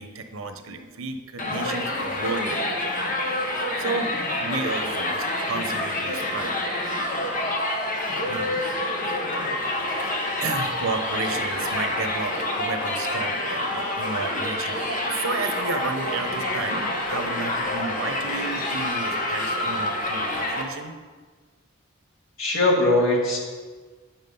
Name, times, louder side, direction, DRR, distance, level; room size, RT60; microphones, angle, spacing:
voice 1, 0.0-2.8 3.8-4.1 4.4-6.9 8.3-8.6 10.4-20.9, right 3 dB, 90° right, 7 dB, 1.0 m, -32 dB
Crowd, 1.4-20.6, left 1 dB, 40° left, 1.3 m, -27 dB
voice 2, 22.4-23.4, left 2 dB, 80° left, -1 dB, 2.2 m, -20 dB
10.0 x 7.5 x 5.5 m, 1.4 s
head